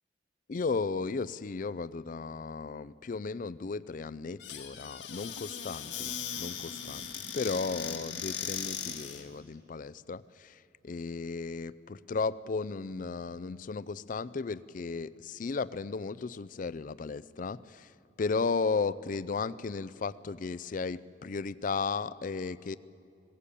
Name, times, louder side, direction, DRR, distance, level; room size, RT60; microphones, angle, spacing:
voice 1, 0.5-17.9 18.2-22.8, left 4 dB, 50° left, 17 dB, 0.4 m, -35 dB
Squeak / Cupboard open or close, 4.4-9.3, left 8 dB, 80° left, 1.9 m, -38 dB
20.5 x 17.0 x 8.4 m, 2.5 s
head